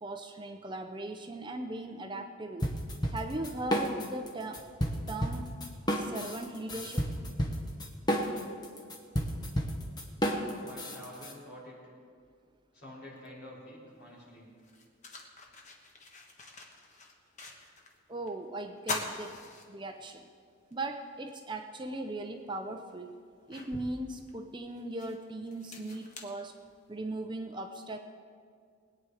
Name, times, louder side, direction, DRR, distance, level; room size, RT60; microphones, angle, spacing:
voice 1, 0.0-2.7 3.1-4.6 5.1-5.5 5.9-7.1 18.1-19.4 19.7-20.3 20.7-23.1 23.5-26.6 26.9-28.0, right 2 dB, 20° right, 5 dB, 0.6 m, -38 dB
sound 1, 2.6-4.3 4.5-11.3, equal, 20° left, 1.2 m, -31 dB
voice 2, 10.2-11.8 12.7-14.5, left 1 dB, 50° left, -6 dB, 4.6 m, -48 dB
sound 2, 14.0-14.1 14.6-18.0 18.3-18.4 18.8-20.3 20.7-20.8 22.2-22.3 22.9-27.1, left 3 dB, 35° left, 1.3 m, -43 dB
20.5 x 9.1 x 4.9 m, 2.1 s
head